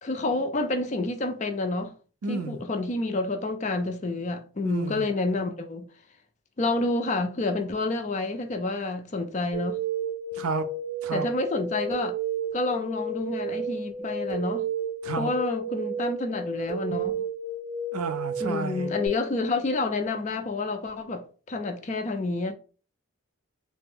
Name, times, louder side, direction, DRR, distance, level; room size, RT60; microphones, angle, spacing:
voice 1, 0.0-1.9 2.3-5.9 6.6-9.8 11.1-12.1 12.5-14.7 15.2-17.1 18.4-22.5, left 2 dB, 35° left, 0.4 m, -29 dB
voice 2, 2.2-2.6 4.6-5.1 10.3-10.7 11.0-11.3 15.0-15.3 17.9-18.9, right 4 dB, 85° right, 0.5 m, -31 dB
sound 1, 9.5-19.1, right 4 dB, 20° right, 1.0 m, -32 dB
3.3 x 2.1 x 3.5 m
head